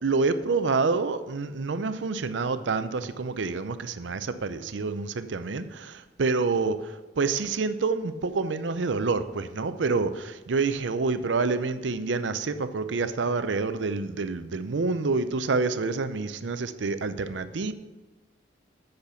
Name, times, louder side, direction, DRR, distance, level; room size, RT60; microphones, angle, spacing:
voice 1, 0.0-6.8 7.2-17.7, right 4 dB, 90° right, 12 dB, 0.6 m, -27 dB
8.1 x 6.7 x 6.9 m, 1.1 s
head